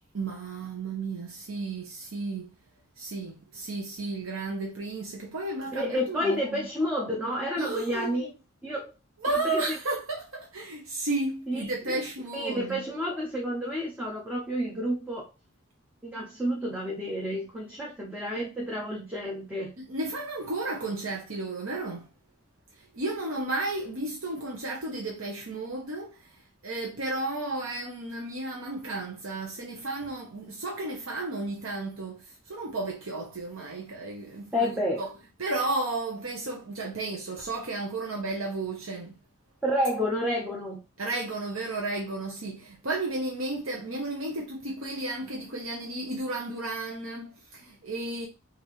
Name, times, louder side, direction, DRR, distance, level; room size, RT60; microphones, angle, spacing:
voice 1, 0.1-2.5 3.0-6.6 7.6-8.3 9.2-12.8 19.8-22.1 22.7-34.7 35.0-35.1 35.4-39.1 41.0-48.3, right 2 dB, 80° right, 0.9 m, -33 dB
voice 2, 5.7-8.3 8.6-8.9 9.3-9.6 11.5-12.0 12.3-15.3 16.0-19.7 34.5-35.0 39.6-40.8, equal, 5° right, 0.8 m, -30 dB
5.5 x 2.8 x 3.0 m
head